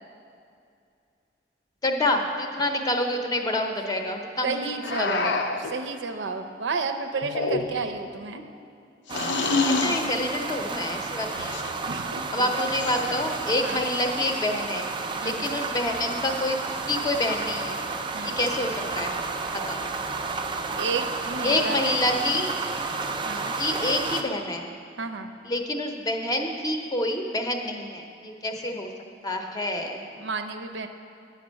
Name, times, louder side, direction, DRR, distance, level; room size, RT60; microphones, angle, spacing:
voice 1, 1.8-4.7 5.0-5.3 7.6-7.8 9.6-11.5 12.3-14.9 15.2-17.8 18.2-19.1 19.5-19.8 21.4-22.5 23.6-24.6 25.4-28.9 29.2-30.1, left 1 dB, 20° left, 4 dB, 0.6 m, -27 dB
voice 2, 4.4-8.4 11.8-12.5 13.6-13.8 15.2-15.5 18.1-18.4 20.8-21.8 23.3-23.5 25.0-25.3 30.2-30.9, right 4 dB, 85° right, 6 dB, 0.6 m, -32 dB
sound 1, 4.8-5.7 7.2-8.0 9.1-10.1 11.3-11.7 12.7-13.4, left 3 dB, 75° left, 0.5 m, -27 dB
sound 2, 9.1-24.2, right 4 dB, 25° right, 0.4 m, -31 dB
9.4 x 5.2 x 6.3 m, 2.4 s
head